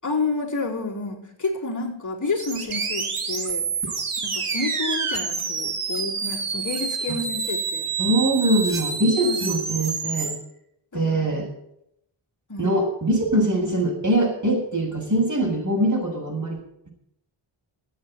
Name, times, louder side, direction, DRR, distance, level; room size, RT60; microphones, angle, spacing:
voice 1, 0.0-3.7 4.2-7.9 9.2-9.5 10.9-11.4 12.5-12.7, left 3 dB, 35° left, -3 dB, 4.5 m, -30 dB
sound 1, 2.4-10.3, right 5 dB, 80° right, 2.6 m, -28 dB
voice 2, 8.0-10.3 10.9-11.5 12.6-16.6, right 1 dB, 35° right, -1 dB, 6.9 m, -22 dB
14.0 x 8.9 x 9.0 m, 0.78 s
cardioid pair, 55°, 50 cm